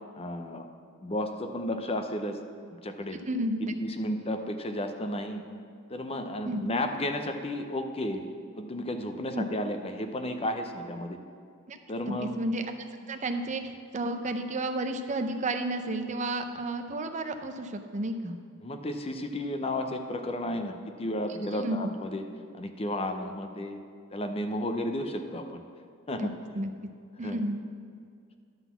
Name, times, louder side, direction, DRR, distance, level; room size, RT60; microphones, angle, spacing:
voice 1, 0.2-0.7 1.0-2.4 2.8-3.2 3.8-5.4 5.9-8.2 8.6-11.2 11.9-12.3 18.6-22.2 22.5-23.8 24.1-25.6 26.1-26.3 27.2-27.4, left 1 dB, 25° left, 6 dB, 0.6 m, -33 dB
voice 2, 3.3-3.7 6.4-6.7 9.3-9.5 11.7-11.8 12.1-12.6 13.1-18.3 21.5-21.8 26.1-26.3 26.5-26.7 27.2-27.6, right 1 dB, 35° right, 6 dB, 0.5 m, -31 dB
11.0 x 4.0 x 7.0 m, 2.2 s
head